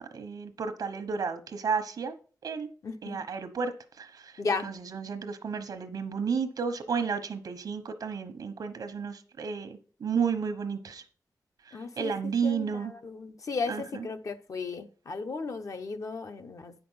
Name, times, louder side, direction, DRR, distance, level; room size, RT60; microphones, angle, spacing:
voice 1, 0.0-2.1 2.4-2.7 3.0-11.0 11.6-12.9 13.7-14.1, right 6 dB, 80° right, 1.1 m, -32 dB
voice 2, 2.8-3.2 4.4-4.7 11.7-16.7, left 4 dB, 60° left, 0.9 m, -35 dB
8.6 x 5.8 x 5.7 m
wide cardioid pair, 135°, 6 cm